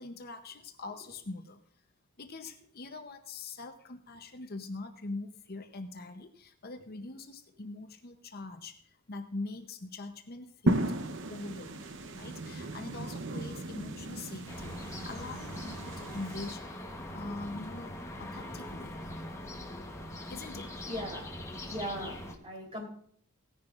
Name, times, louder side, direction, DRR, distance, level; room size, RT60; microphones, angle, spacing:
voice 1, 0.0-1.6 2.2-11.0 11.3-11.9 12.1-14.8 15.0-16.6 17.1-19.0 20.3-20.8, left 3 dB, 45° left, 5 dB, 0.8 m, -43 dB
sound 1, 10.7-16.5, right 1 dB, 60° right, 0.8 m, -35 dB
sound 2, 14.5-22.3, left 1 dB, 15° left, 1.1 m, -42 dB
voice 2, 19.9-21.3 21.5-22.9, equal, 25° right, -1 dB, 3.5 m, -41 dB
18.0 x 10.0 x 2.5 m, 0.62 s
head